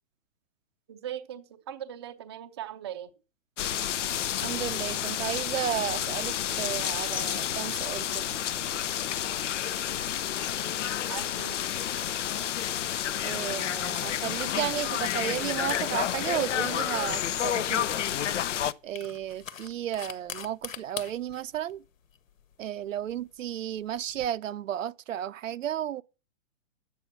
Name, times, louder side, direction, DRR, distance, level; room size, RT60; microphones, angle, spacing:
voice 1, 0.9-3.1 11.1-11.6, right 10 dB, 20° right, 0.6 m, -39 dB
sound 1, 3.6-18.7, left 10 dB, 65° left, 0.8 m, -30 dB
voice 2, 4.4-8.2 13.2-18.0 18.8-21.8 22.6-26.0, right 11 dB, 75° right, 0.7 m, -33 dB
sound 2, 13.6-24.3, left 8 dB, 80° left, 1.5 m, -46 dB
11.0 x 8.4 x 5.9 m
hypercardioid pair, 170°, 39 cm